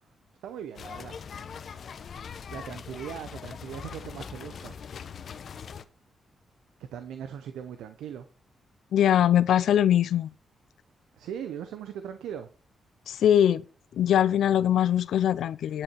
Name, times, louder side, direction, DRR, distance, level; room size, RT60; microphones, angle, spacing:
voice 1, 0.4-1.2 2.5-4.7 6.9-8.3 11.2-12.5, right 9 dB, 85° right, 0.8 m, -39 dB
sound 1, 0.8-5.8, left 6 dB, 65° left, 0.9 m, -41 dB
voice 2, 8.9-10.3 13.1-13.6 13.9-15.8, left 10 dB, 80° left, 0.4 m, -22 dB
10.0 x 8.4 x 4.6 m
supercardioid pair, 55°, 0 cm